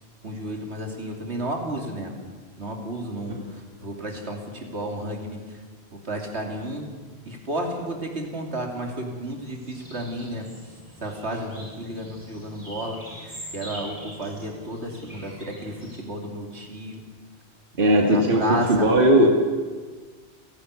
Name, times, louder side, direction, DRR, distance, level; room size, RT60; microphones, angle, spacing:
voice 1, 0.2-2.1 2.6-5.6 5.9-6.9 7.2-10.5 11.0-17.0 18.0-18.7 19.0-19.3, right 1 dB, 75° right, 2 dB, 3.2 m, -32 dB
sound 1, 9.4-16.0, equal, 35° right, 7.4 m, -43 dB
voice 2, 17.8-19.3, right 1 dB, 55° right, 1 dB, 2.3 m, -18 dB
29.5 x 11.5 x 8.3 m, 1.4 s
omnidirectional pair, 1.1 m